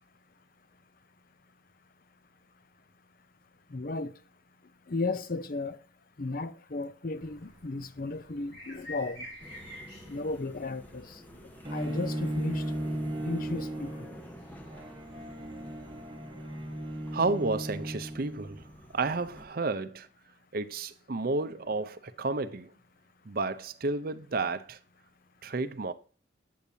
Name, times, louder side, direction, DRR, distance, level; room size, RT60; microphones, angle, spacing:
voice 1, 3.7-4.1 4.9-5.8 6.2-9.3 10.1-11.2 11.7-12.6 13.2-14.1, left 3 dB, 45° left, 0.6 m, -34 dB
sound 1, 7.1-16.0, left 1 dB, 90° left, 4.7 m, -51 dB
sound 2, 9.4-19.5, equal, 10° left, 0.8 m, -50 dB
Bowed string instrument, 11.7-18.7, right 1 dB, 25° right, 1.1 m, -36 dB
voice 2, 17.1-20.1 20.5-22.7 23.3-24.8 25.4-25.9, right 3 dB, 50° right, 0.6 m, -31 dB
8.5 x 8.4 x 2.7 m
head